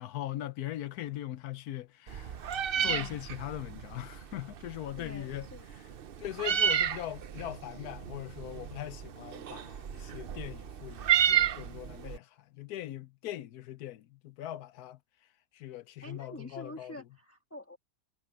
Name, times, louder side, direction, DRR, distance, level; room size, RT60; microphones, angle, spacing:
voice 1, 0.0-2.4 2.8-5.5 6.2-15.0 15.5-17.0, left 13 dB, 70° left, 1.1 m, -40 dB
Meow, 2.1-12.2, right 9 dB, 65° right, 0.5 m, -32 dB
voice 2, 2.7-3.2 5.0-5.7 16.0-17.8, left 1 dB, 10° left, 1.5 m, -47 dB
omnidirectional pair, 1.8 m